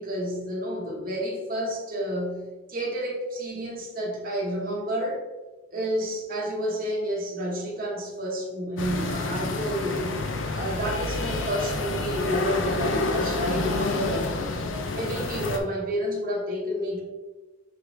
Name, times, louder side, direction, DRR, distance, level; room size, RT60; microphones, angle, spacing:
voice 1, 0.0-5.3 5.7-10.2 10.5-14.3 14.9-17.0, equal, 50° right, -2 dB, 0.9 m, -30 dB
sound 1, 8.8-15.6, left 3 dB, 85° left, 0.5 m, -28 dB
5.6 x 3.2 x 2.6 m, 1.1 s
head